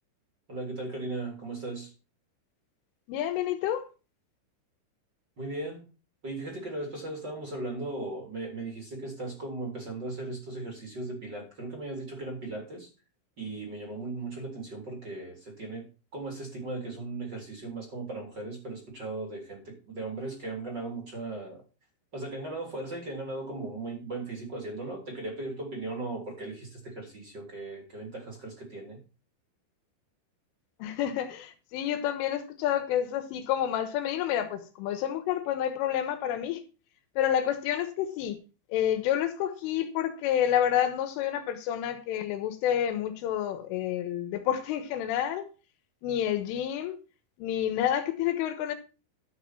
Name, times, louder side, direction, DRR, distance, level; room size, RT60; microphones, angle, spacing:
voice 1, 0.5-1.9 5.4-5.8 6.2-12.9 13.4-21.6 22.1-29.0, right 2 dB, 25° right, 3.2 m, -37 dB
voice 2, 3.1-3.9 30.8-36.6 37.2-38.4 38.7-45.5 46.0-47.0 47.4-48.8, left 10 dB, 85° left, 3.8 m, -29 dB
12.5 x 6.4 x 5.9 m
omnidirectional pair, 5.6 m